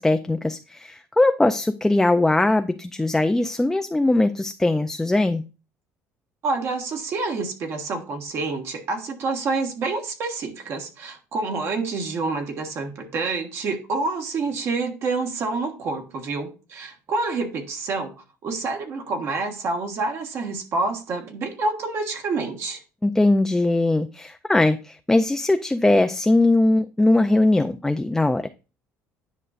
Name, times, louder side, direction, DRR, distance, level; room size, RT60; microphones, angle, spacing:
voice 1, 0.0-5.4 23.0-28.5, left 2 dB, 5° left, 0.3 m, -20 dB
voice 2, 6.4-18.1 18.4-22.8, right 3 dB, 50° right, 1.4 m, -28 dB
9.9 x 5.3 x 2.5 m
cardioid pair, 125°, 6 cm